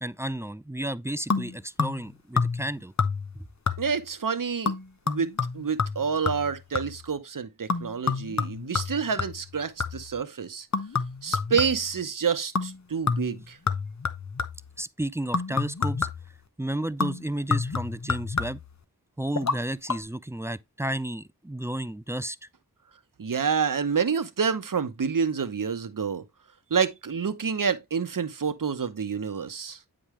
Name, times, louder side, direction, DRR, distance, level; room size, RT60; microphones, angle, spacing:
voice 1, 0.0-2.9 3.3-3.5 14.8-16.1 16.6-18.6 19.2-22.5, right 1 dB, 10° right, 0.3 m, -32 dB
sound 1, 1.3-2.1 2.4-2.7 3.0-3.4 3.7-4.1 4.7-7.1 7.7-10.2 10.7-12.0 12.6-12.8 13.1-14.7 15.3-16.4 17.0-18.8 19.4-19.6 19.9-20.0, left 4 dB, 50° left, 0.9 m, -29 dB
voice 2, 3.8-4.7 5.1-10.7 11.2-13.6 23.2-26.2 26.7-29.8, right 6 dB, 60° right, 0.9 m, -28 dB
8.7 x 5.1 x 3.1 m
wide cardioid pair, 45°, 36 cm